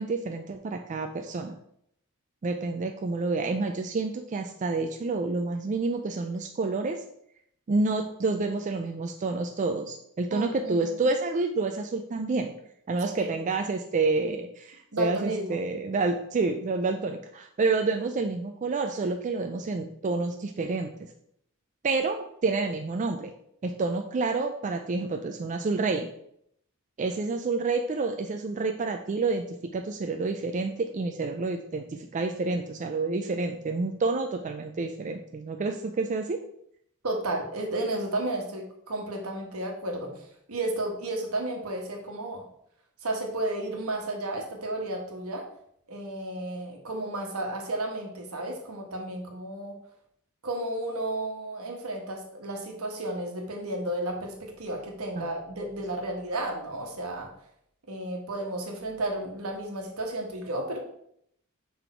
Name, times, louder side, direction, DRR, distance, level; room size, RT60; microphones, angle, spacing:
voice 1, 0.0-1.6 2.4-7.0 7.7-12.5 12.9-21.1 21.8-23.3 23.6-26.1 27.0-36.4 55.2-55.3, right 3 dB, 35° right, 5 dB, 0.4 m, -29 dB
voice 2, 10.3-10.9 13.2-13.3 14.9-15.6 37.0-42.4 43.0-45.4 45.9-49.8 50.4-57.3 57.9-60.8, right 1 dB, 75° right, 2 dB, 1.3 m, -33 dB
6.0 x 3.5 x 4.4 m, 0.71 s
head